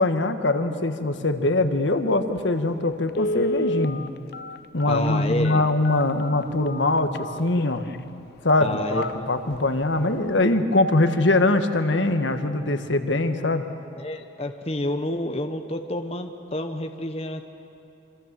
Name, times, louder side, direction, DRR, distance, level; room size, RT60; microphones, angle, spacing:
voice 1, 0.0-4.1 4.7-7.8 8.4-13.6, left 2 dB, 80° left, 8 dB, 1.5 m, -22 dB
Telephone, 2.4-2.5 3.1-8.0 8.5-8.6 9.0-9.1 9.5-9.8 10.1-10.2, left 1 dB, 60° left, 0.6 m, -30 dB
voice 2, 4.8-5.6 8.6-9.1 12.7-12.9 14.0-17.5, left 1 dB, 35° left, 6 dB, 1.1 m, -29 dB
27.0 x 25.5 x 7.6 m, 2.7 s
head